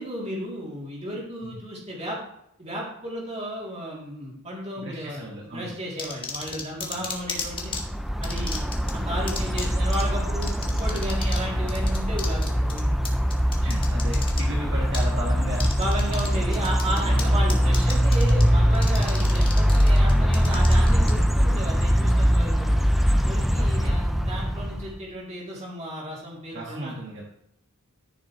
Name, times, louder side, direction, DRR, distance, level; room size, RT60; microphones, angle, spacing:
voice 1, 0.0-2.2 2.6-7.7 8.2-8.6 8.9-12.9 13.6-13.7 15.7-22.8 23.2-26.9, equal, 30° right, -4 dB, 3.1 m, -34 dB
voice 2, 4.8-5.8 6.9-7.1 13.2-13.3 13.6-15.7 16.3-16.4 17.0-17.4 23.5-24.0 26.5-27.2, right 1 dB, 50° right, -3 dB, 1.6 m, -35 dB
sound 1, 6.0-7.8 8.2-8.9 9.3-9.7 9.9-10.0 10.4-11.4 11.7-14.4 14.9-15.1 15.5-16.3 16.5-17.2 17.5-18.4 18.7-21.1, left 5 dB, 25° left, 1.4 m, -34 dB
sound 2, 7.4-25.0, equal, ahead, 0.5 m, -22 dB
14.0 x 7.1 x 3.2 m, 0.75 s
head